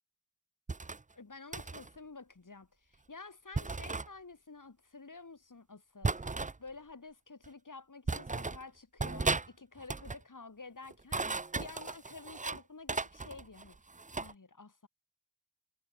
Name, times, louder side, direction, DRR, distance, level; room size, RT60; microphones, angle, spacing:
sound 1, 0.7-1.0 1.5-1.9 3.5-4.1 6.0-6.6 7.4-7.5 8.1-8.6 9.0-9.5 9.8-10.2 10.9-12.6 12.9-14.3, right 3 dB, 25° right, 0.6 m, -35 dB
voice 1, 1.2-6.1 6.6-13.8 14.1-14.9, left 4 dB, 75° left, 3.7 m, -50 dB
wide cardioid pair, 50°, 31 cm